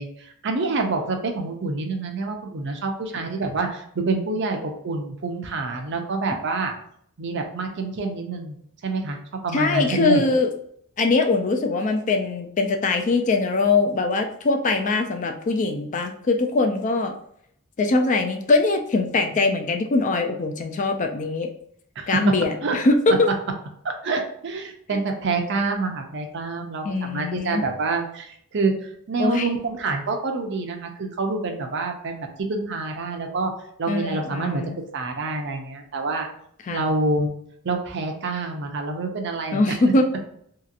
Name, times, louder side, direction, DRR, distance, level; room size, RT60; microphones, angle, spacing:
voice 1, 0.0-6.7 7.2-8.6 8.8-9.2 9.4-10.2 22.0-22.3 22.6-22.8 23.8-33.5 33.8-34.6 34.9-36.3 36.7-37.3 37.6-39.7, right 3 dB, 55° right, 4 dB, 0.5 m, -27 dB
voice 2, 9.5-10.5 11.0-17.1 17.8-21.5 22.1-23.3 26.8-27.6 29.2-29.5 33.9-34.8 36.7-36.9 39.5-40.1, left 3 dB, 35° left, 5 dB, 0.3 m, -22 dB
3.0 x 2.8 x 2.4 m, 0.66 s
head